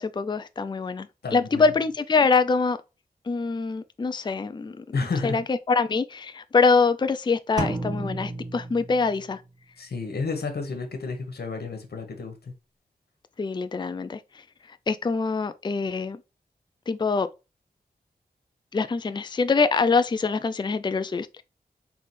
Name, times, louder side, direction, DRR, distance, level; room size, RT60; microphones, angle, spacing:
voice 1, 0.0-2.8 3.3-4.8 5.2-9.4 13.4-16.2 16.9-17.3 18.7-21.4, left 4 dB, 30° left, 0.4 m, -24 dB
voice 2, 1.2-1.7 4.9-5.4 9.8-12.5, left 4 dB, 80° left, 1.3 m, -31 dB
sound 1, 7.6-9.5, right 2 dB, 25° right, 1.6 m, -32 dB
4.0 x 3.3 x 3.3 m
cardioid pair, 50°, 16 cm